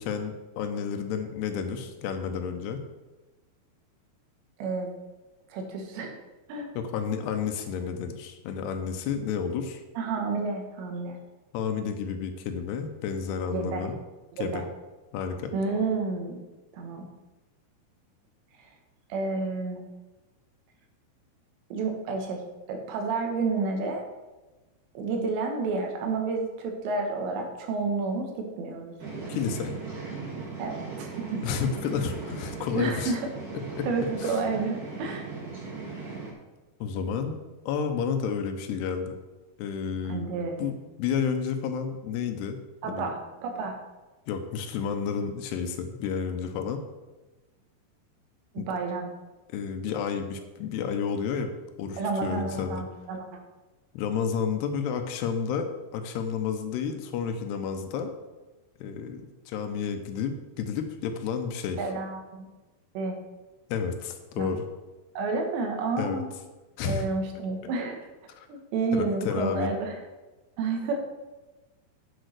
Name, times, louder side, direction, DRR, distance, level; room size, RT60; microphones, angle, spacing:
voice 1, 0.0-2.8 6.7-9.8 11.5-14.0 14.4-14.7 15.1-15.5 29.3-29.7 31.4-33.2 33.8-33.9 34.2-34.4 36.8-37.4 37.7-39.1 39.6-40.3 40.6-42.6 42.8-43.1 44.3-46.8 48.6-48.7 49.5-51.5 51.8-52.8 53.9-58.1 58.8-61.8 63.7-64.7 66.0-66.2 66.8-67.1 68.4-68.5 68.9-69.7, left 6 dB, 80° left, 6 dB, 2.8 m, -31 dB
voice 2, 4.6-4.9 5.5-6.2 6.5-6.7 10.0-11.2 13.5-13.9 14.3-14.6 15.5-16.4 16.7-17.1 19.1-19.8 21.7-24.1 25.0-28.3 28.6-28.9 30.6-31.7 32.7-33.2 33.8-35.3 40.1-40.8 42.8-43.8 48.6-49.1 52.0-53.4 61.8-62.5 63.0-63.2 64.4-64.5 65.2-66.3 66.8-68.0 68.5-70.0 70.6-71.0, right 3 dB, 85° right, 3 dB, 3.7 m, -30 dB
sound 1, 29.0-36.3, right 4 dB, 45° right, 1.1 m, -38 dB
8.9 x 6.3 x 6.5 m, 1.1 s
omnidirectional pair, 4.9 m